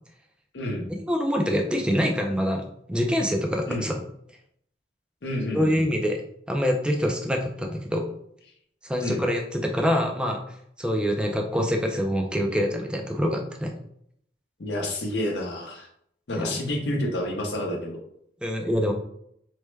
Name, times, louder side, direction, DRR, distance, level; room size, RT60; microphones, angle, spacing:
voice 1, 0.5-0.9 3.7-3.9 5.2-5.8 9.0-9.2 14.6-15.9 16.3-18.0, left 1 dB, 75° left, 0 dB, 0.7 m, -29 dB
voice 2, 1.1-4.0 5.5-6.2 6.5-8.0 8.8-10.4 10.8-13.7 16.3-16.6 18.4-18.9, equal, 5° right, 2 dB, 0.3 m, -25 dB
3.3 x 2.1 x 3.1 m, 0.70 s
head